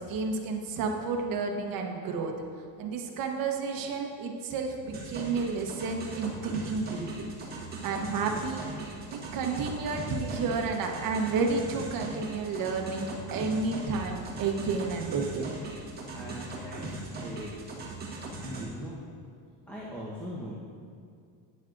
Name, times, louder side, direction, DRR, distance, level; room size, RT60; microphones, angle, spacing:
voice 1, 0.0-2.3 2.8-7.3 7.8-15.5, right 4 dB, 45° right, 2 dB, 1.1 m, -31 dB
sound 1, 4.9-18.6, right 2 dB, 20° right, 1.5 m, -39 dB
voice 2, 16.1-17.5 18.4-19.0 19.7-20.6, equal, 5° left, -8 dB, 1.1 m, -40 dB
12.5 x 9.8 x 2.6 m, 2.3 s
cardioid pair, 160°, 46 cm